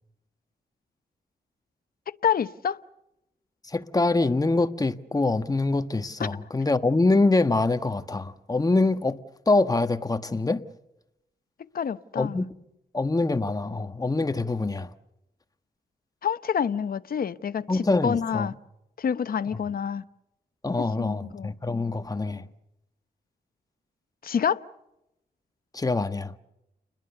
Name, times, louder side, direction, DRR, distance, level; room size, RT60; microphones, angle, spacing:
voice 1, 2.2-2.8 6.2-6.3 11.7-12.4 16.2-18.5 19.0-20.0 21.0-21.5 24.2-24.6, left 7 dB, 60° left, 0.9 m, -27 dB
voice 2, 3.6-9.2 9.5-10.6 12.2-12.5 12.9-14.9 17.7-18.5 20.6-22.5 25.7-26.3, left 3 dB, 20° left, 1.4 m, -24 dB
29.5 x 21.5 x 6.9 m
cardioid pair, 85°, 17 cm